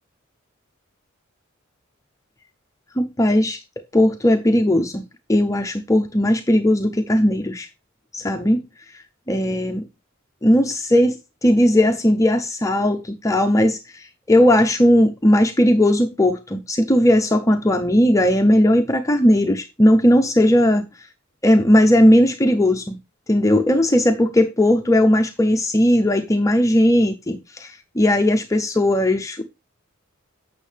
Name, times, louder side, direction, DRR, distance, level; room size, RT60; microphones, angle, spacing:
voice 1, 3.0-3.6 3.9-5.0 5.3-7.7 8.1-8.6 9.3-9.9 10.4-20.8 21.4-23.0 23.3-29.4, left 1 dB, 15° left, 0.6 m, -17 dB
8.2 x 6.3 x 3.3 m
head